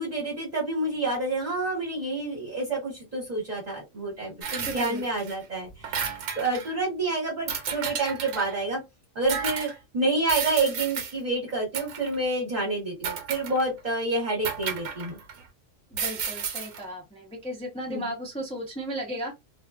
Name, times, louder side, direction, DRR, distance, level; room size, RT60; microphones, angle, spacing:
voice 1, 0.0-8.8 9.1-15.2 17.9-18.1, right 2 dB, 35° right, 1.1 m, -28 dB
sound 1, 4.4-5.4 5.7-6.7 7.5-8.6 9.3-9.8 10.3-11.1 11.7-12.2 13.0-13.8 14.5-15.4 15.9-16.8, right 7 dB, 80° right, 1.0 m, -32 dB
voice 2, 4.7-5.0 15.9-19.3, equal, 10° left, 0.4 m, -35 dB
2.4 x 2.2 x 2.3 m
omnidirectional pair, 1.3 m